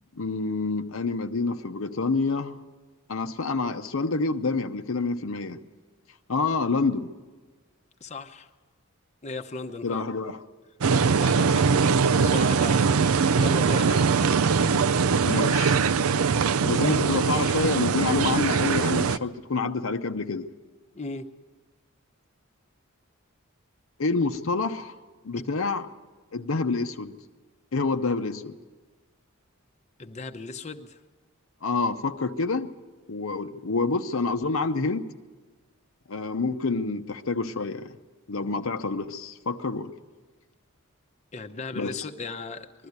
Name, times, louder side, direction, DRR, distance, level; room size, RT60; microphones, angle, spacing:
voice 1, 0.2-2.6 3.1-5.6 6.3-7.1 9.8-10.4 15.2-15.8 16.6-20.5 24.0-24.9 25.2-25.9 26.3-27.1 27.7-28.6 31.6-32.7 33.1-35.1 36.1-38.0 38.3-39.9 41.7-42.0, left 3 dB, 70° left, 7 dB, 0.8 m, -27 dB
voice 2, 8.0-8.5 9.2-10.0 11.1-11.9 12.2-12.8 13.3-14.1 20.9-21.3 25.3-25.4 30.0-31.0 41.3-42.9, left 3 dB, 30° left, 5 dB, 0.8 m, -36 dB
sound 1, 10.8-19.2, right 5 dB, 85° right, 0.5 m, -22 dB
20.5 x 13.5 x 9.5 m, 1.4 s
head